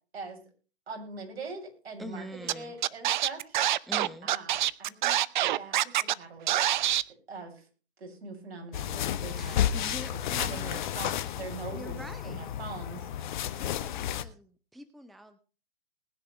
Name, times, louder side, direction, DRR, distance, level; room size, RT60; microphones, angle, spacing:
voice 1, 0.9-3.6 4.2-5.2 5.5-6.5 7.3-7.6 8.0-9.6 10.3-13.1, right 4 dB, 70° right, 2 dB, 6.6 m, -42 dB
voice 2, 2.0-2.7 3.9-4.3 9.4-11.1 11.7-12.5 13.5-15.4, equal, ahead, 10 dB, 0.7 m, -45 dB
Scratching (performance technique), 2.5-2.6 2.8-6.1 6.5-7.0, right 13 dB, 45° right, 0.6 m, -25 dB
sound 1, 8.7-14.2, left 11 dB, 45° left, 1.2 m, -32 dB
20.0 x 10.0 x 3.2 m, 0.37 s
hypercardioid pair, 125°, 32 cm